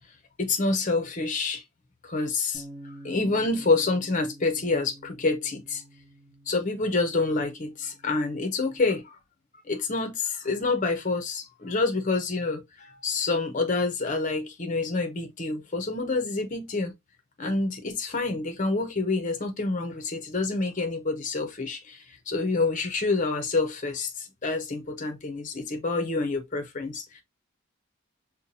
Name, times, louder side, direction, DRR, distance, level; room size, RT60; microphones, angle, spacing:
voice 1, 0.4-1.6 2.0-5.8 6.5-9.1 9.7-16.9 17.4-27.2, left 3 dB, 35° left, 0.7 m, -27 dB
Bass guitar, 2.5-8.8, right 1 dB, 10° left, 1.6 m, -49 dB
5.5 x 2.2 x 2.6 m
head